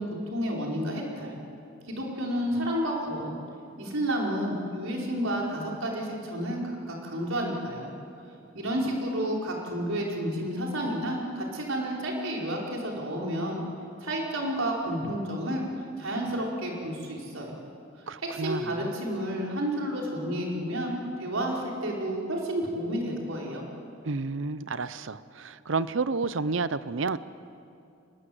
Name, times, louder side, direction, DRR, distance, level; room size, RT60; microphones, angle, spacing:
voice 1, 0.0-1.3 1.9-3.3 3.8-7.9 8.5-13.6 14.0-15.6 16.0-17.6 18.4-23.6, equal, 85° right, -2 dB, 4.9 m, -30 dB
voice 2, 18.1-18.9 24.0-27.2, right 4 dB, 70° right, 15 dB, 0.7 m, -30 dB
24.0 x 21.0 x 7.9 m, 2.6 s
head